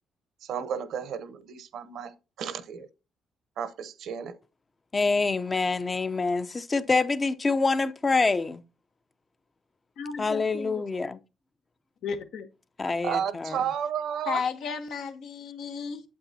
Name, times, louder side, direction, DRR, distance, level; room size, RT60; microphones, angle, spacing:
voice 1, 0.4-2.9 3.6-4.4 13.0-14.4, right 8 dB, 75° right, 0.9 m, -32 dB
voice 2, 4.9-8.6 10.2-11.2 12.8-13.6, left 3 dB, 30° left, 0.7 m, -26 dB
voice 3, 10.0-10.8 12.0-12.5 14.2-16.0, left 5 dB, 75° left, 1.2 m, -33 dB
8.7 x 7.9 x 2.8 m
cardioid pair, 90°, 0 cm